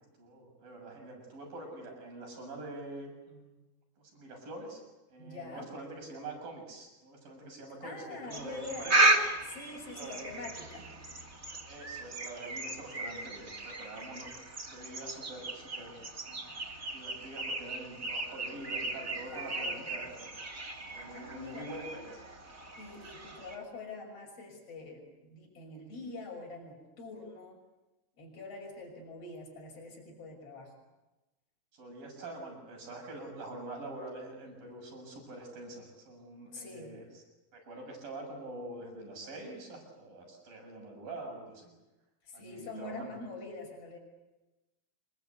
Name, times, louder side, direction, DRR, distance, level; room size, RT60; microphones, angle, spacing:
voice 1, 0.2-3.5 4.0-4.8 5.1-9.1 9.8-10.4 11.7-14.3 14.7-16.5 16.8-20.3 20.9-22.2 31.7-37.2 37.5-41.7 42.3-43.2, right 2 dB, 60° right, 3 dB, 8.6 m, -45 dB
voice 2, 5.2-5.7 7.8-9.0 9.4-10.9 19.2-19.9 21.1-21.7 22.8-27.6 28.2-30.7 36.5-36.9 42.2-44.0, left 3 dB, 40° left, 0 dB, 7.1 m, -45 dB
sound 1, 8.3-23.6, right 2 dB, 25° right, 2.5 m, -35 dB
27.5 x 21.5 x 8.4 m, 1.1 s
omnidirectional pair, 4.5 m